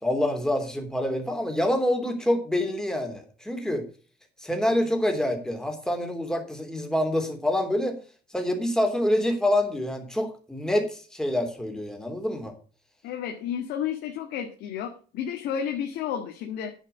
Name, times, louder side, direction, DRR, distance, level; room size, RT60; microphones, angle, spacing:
voice 1, 0.0-3.8 4.4-7.9 8.3-12.5, left 1 dB, 5° left, 4 dB, 3.1 m, -26 dB
voice 2, 13.0-16.7, left 8 dB, 85° left, 3 dB, 1.8 m, -31 dB
10.0 x 6.0 x 7.9 m, 0.39 s
cardioid pair, 110°, 17 cm